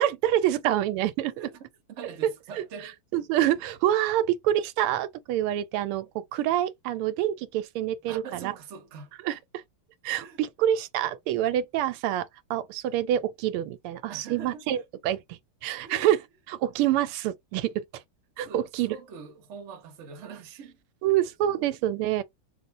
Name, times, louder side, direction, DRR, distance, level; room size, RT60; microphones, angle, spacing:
voice 1, 0.0-1.5 2.2-2.3 2.6-2.7 3.1-8.5 9.2-9.6 10.0-16.2 16.5-18.0 18.4-19.0 21.0-22.2, right 12 dB, 90° right, 1.5 m, -27 dB
voice 2, 1.9-2.9 8.1-9.2 10.2-10.4 14.1-14.8 15.8-16.1 18.4-20.8 21.1-21.6, right 5 dB, 50° right, 0.9 m, -43 dB
4.1 x 2.3 x 4.1 m
omnidirectional pair, 2.4 m